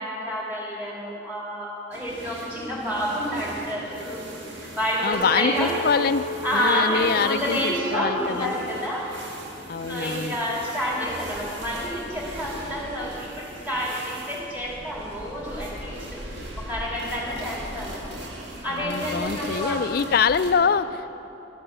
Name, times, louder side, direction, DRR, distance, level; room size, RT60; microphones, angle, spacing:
voice 1, 0.0-4.2 4.5-5.7 6.4-9.1 9.9-18.1 18.6-19.8, equal, 10° right, -5 dB, 2.8 m, -29 dB
sound 1, 1.9-20.5, right 1 dB, 85° right, 1.6 m, -39 dB
voice 2, 5.0-6.2 6.5-8.5 9.7-10.4 18.7-21.2, left 6 dB, 55° left, 14 dB, 0.4 m, -24 dB
Chink clink, 5.1-9.5 9.9-10.5, right 2 dB, 35° right, 1.3 m, -36 dB
12.0 x 8.7 x 6.8 m, 2.9 s
head